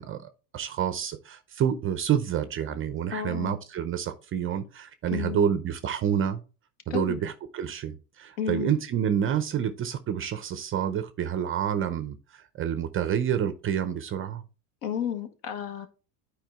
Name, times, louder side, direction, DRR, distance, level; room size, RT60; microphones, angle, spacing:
voice 1, 0.0-6.4 6.9-14.4, right 9 dB, 25° right, 12 dB, 0.5 m, -28 dB
voice 2, 3.1-3.6 5.1-5.5 6.9-7.2 8.4-8.7 14.8-15.9, left 8 dB, 55° left, 7 dB, 1.6 m, -32 dB
9.1 x 4.8 x 3.5 m, 0.33 s
supercardioid pair, 115°, 49 cm